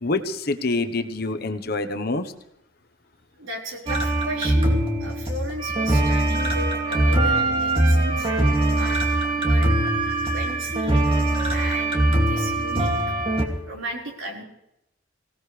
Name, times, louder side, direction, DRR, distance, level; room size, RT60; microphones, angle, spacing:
voice 1, 0.0-2.3, left 2 dB, 50° left, 8 dB, 1.1 m, -26 dB
voice 2, 3.4-8.3 8.7-9.0 9.3-9.7 10.3-11.0 11.5-12.9 13.7-14.4, right 1 dB, 85° right, -1 dB, 4.7 m, -34 dB
sound 1, 3.9-13.4, right 1 dB, 30° right, 2.5 m, -22 dB
25.0 x 17.0 x 3.4 m, 0.82 s
head